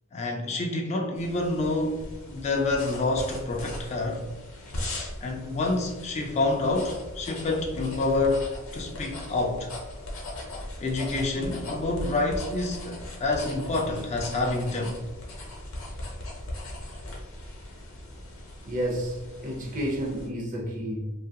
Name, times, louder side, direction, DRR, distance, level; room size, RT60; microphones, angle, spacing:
voice 1, 0.1-4.2 5.2-8.5 8.7-9.7 10.8-15.0, left 2 dB, 30° left, 0.3 m, -28 dB
sound 1, 1.2-20.3, left 1 dB, 60° left, 0.7 m, -39 dB
voice 2, 18.6-21.1, equal, 35° right, 0.6 m, -31 dB
2.9 x 2.4 x 2.6 m
head